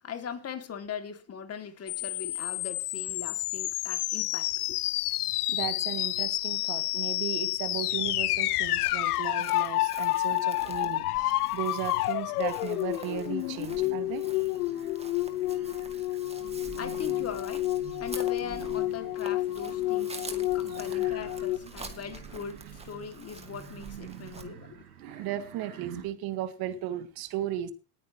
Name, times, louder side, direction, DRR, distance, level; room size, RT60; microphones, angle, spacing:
voice 1, 0.0-4.8 16.8-24.8, left 7 dB, 35° left, 2.5 m, -40 dB
sound 1, 1.9-21.6, left 17 dB, 85° left, 0.7 m, -30 dB
voice 2, 5.3-14.5 20.7-20.8 25.2-27.7, right 11 dB, 55° right, 2.0 m, -36 dB
Chirp tweet, 8.4-24.4, right 3 dB, 15° right, 2.2 m, -48 dB
sound 2, 10.3-26.0, right 9 dB, 85° right, 4.2 m, -48 dB
19.5 x 9.3 x 3.0 m
hypercardioid pair, 95°, 44 cm